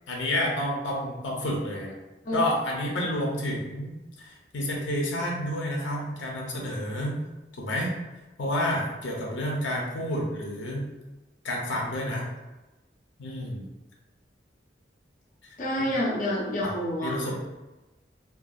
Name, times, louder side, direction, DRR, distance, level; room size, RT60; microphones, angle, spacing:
voice 1, 0.1-2.0 2.3-7.2 7.6-7.9 8.4-10.9 11.4-12.3 13.2-13.6 15.4-15.5 16.6-16.7 17.0-17.4, left 1 dB, 90° left, -2 dB, 0.6 m, -29 dB
voice 2, 15.6-17.2, equal, 45° left, -4 dB, 0.4 m, -28 dB
2.6 x 2.3 x 2.3 m, 1.1 s
head